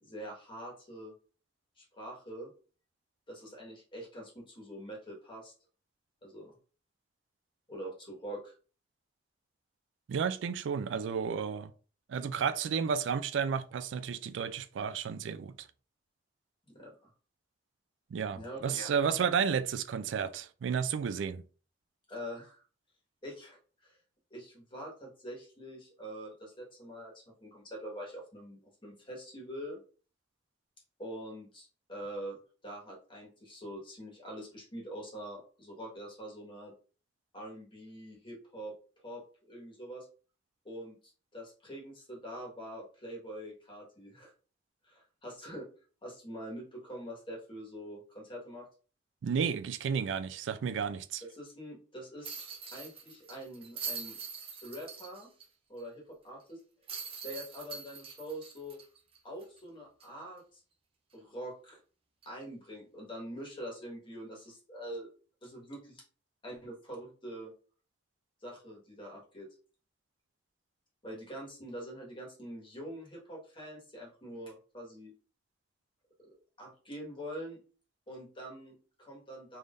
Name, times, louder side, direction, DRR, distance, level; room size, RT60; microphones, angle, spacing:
voice 1, 0.0-1.1 1.8-2.5 3.3-5.5 6.2-6.5 7.7-8.5 16.6-17.1 18.3-18.9 22.1-22.6 23.2-24.0 24.3-29.8 31.0-36.7 37.3-38.7 39.0-40.1 40.6-40.9 41.3-44.3 44.8-45.7 46.0-48.7 51.3-52.4 52.7-54.2 54.6-55.3 55.7-56.6 57.2-58.8 59.2-60.6 61.1-61.8 62.2-65.1 65.4-66.0 66.4-67.5 68.4-69.5 71.0-75.1 76.2-76.3 76.6-77.6 78.1-79.6, equal, 30° left, 1.5 m, -44 dB
voice 2, 10.1-11.7 12.1-15.7 18.1-21.4 49.2-51.2, right 6 dB, 90° right, 0.3 m, -32 dB
sound 1, 52.2-55.5 55.8-55.9 56.9-59.6 60.0-60.1 62.2-62.4, right 5 dB, 30° right, 0.7 m, -43 dB
3.6 x 3.3 x 2.5 m
head